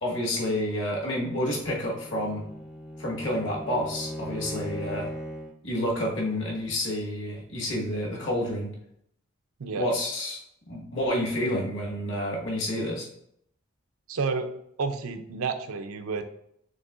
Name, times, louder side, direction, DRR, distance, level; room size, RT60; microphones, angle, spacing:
voice 1, 0.0-2.4 3.0-5.1 5.6-8.7 9.7-10.4 10.7-13.1, left 1 dB, 60° left, -2 dB, 1.3 m, -29 dB
Bowed string instrument, 1.8-5.6, equal, ahead, 0.4 m, -38 dB
voice 2, 14.1-14.5 14.8-16.2, right 4 dB, 85° right, 7 dB, 0.5 m, -30 dB
6.3 x 3.0 x 2.4 m, 0.71 s
head